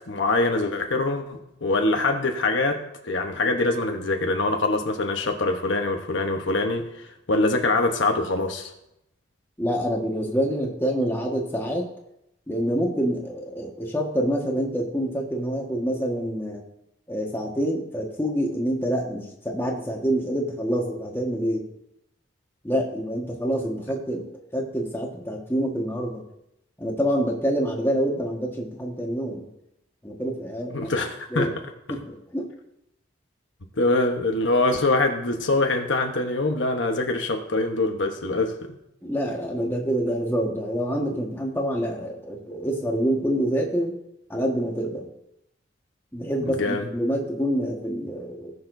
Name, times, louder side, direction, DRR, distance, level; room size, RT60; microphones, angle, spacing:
voice 1, 0.1-8.7 30.7-31.5 33.8-38.8 46.5-46.9, left 2 dB, 70° left, 4 dB, 1.1 m, -24 dB
voice 2, 9.6-11.9 12.5-16.6 17.1-21.6 22.6-26.2 26.8-29.5 30.0-30.9 31.3-31.5 31.9-32.5 39.0-44.0 44.3-45.0 46.1-48.5, equal, 10° left, -1 dB, 1.5 m, -26 dB
18.5 x 6.8 x 2.7 m, 0.82 s
head